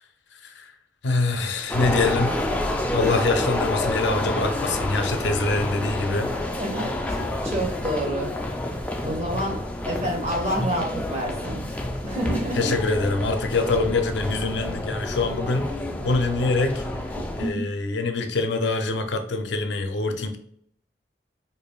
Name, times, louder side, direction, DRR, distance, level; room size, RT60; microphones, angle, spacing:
voice 1, 0.3-0.7 1.0-2.5 2.8-6.3 12.5-15.7 16.0-20.4, left 3 dB, 90° left, 6 dB, 0.5 m, -25 dB
sound 1, 1.7-17.5, left 1 dB, 10° left, 0.3 m, -29 dB
voice 2, 6.6-8.3 9.0-11.7 12.0-12.7 13.6-13.7 17.1-17.7, right 1 dB, 35° right, -1 dB, 1.0 m, -29 dB
4.8 x 2.6 x 2.2 m, 0.69 s
head